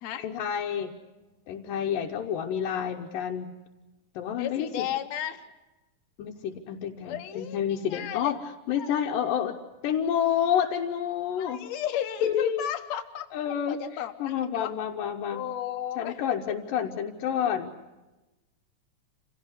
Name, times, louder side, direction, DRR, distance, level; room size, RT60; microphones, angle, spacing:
voice 1, 0.2-0.9 1.5-3.5 4.2-4.9 6.2-8.4 8.7-9.5 9.8-11.7 12.2-12.7 13.3-13.8 14.2-15.4 16.0-17.7, left 9 dB, 80° left, 1 dB, 2.7 m, -29 dB
voice 2, 4.4-5.5 7.0-8.3 8.8-9.0 11.4-13.3 13.7-14.7 15.3-16.2, left 11 dB, 60° left, 7 dB, 2.2 m, -34 dB
27.5 x 16.5 x 9.7 m, 1.1 s
omnidirectional pair, 3.9 m